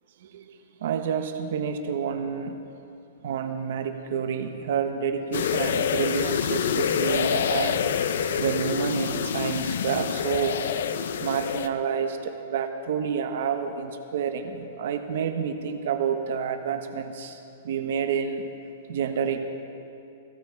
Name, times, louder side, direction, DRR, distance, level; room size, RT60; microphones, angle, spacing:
voice 1, 0.2-2.8 3.2-7.9 8.4-10.6 11.2-18.5 18.9-19.4, right 7 dB, 60° right, 7 dB, 1.2 m, -29 dB
sound 1, 5.3-11.7, left 7 dB, 70° left, 0.7 m, -26 dB
16.5 x 15.5 x 4.7 m, 2.7 s
hypercardioid pair, 165°, 0 cm